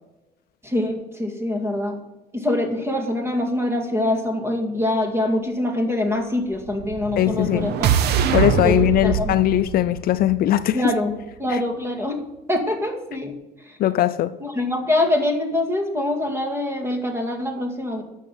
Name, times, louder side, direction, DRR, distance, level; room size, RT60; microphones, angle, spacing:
voice 1, 0.6-2.0 2.3-7.9 8.2-8.3 8.6-8.8 9.0-9.4 10.7-11.1 11.4-12.2 12.5-13.4 13.7-13.8 14.4-18.0, left 1 dB, 15° right, 2.1 m, -24 dB
sound 1, 6.7-10.9, right 8 dB, 75° right, 0.8 m, -24 dB
voice 2, 7.2-7.7 8.3-10.9 11.5-11.6 13.8-14.4, left 13 dB, 60° left, 0.5 m, -20 dB
9.9 x 6.5 x 7.2 m
cardioid pair, 110°, 17 cm